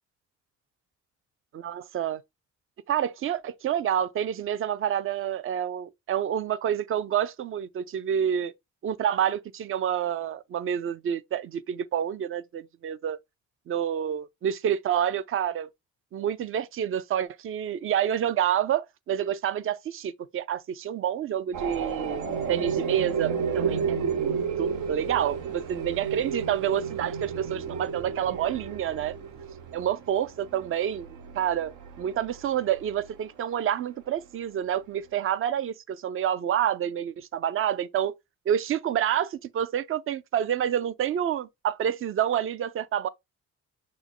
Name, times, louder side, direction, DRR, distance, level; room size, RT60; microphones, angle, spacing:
voice 1, 1.5-2.2 2.9-8.5 8.8-13.2 13.7-15.7 16.1-29.2 29.7-31.7 32.0-38.1 38.5-43.1, right 9 dB, 45° right, 0.4 m, -28 dB
sound 1, 21.5-33.2, right 6 dB, 80° right, 0.8 m, -32 dB
6.1 x 2.1 x 3.0 m
cardioid pair, 90°, 30 cm